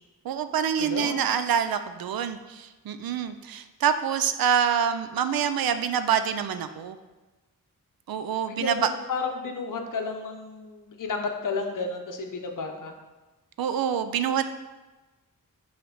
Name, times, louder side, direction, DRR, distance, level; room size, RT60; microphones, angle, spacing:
voice 1, 0.2-7.0 8.1-8.9 13.6-14.5, right 8 dB, 80° right, 11 dB, 0.5 m, -26 dB
voice 2, 0.8-1.3 8.5-12.9, left 4 dB, 60° left, 4 dB, 0.8 m, -32 dB
5.7 x 3.3 x 5.5 m, 1.2 s
wide cardioid pair, 115°, 35 cm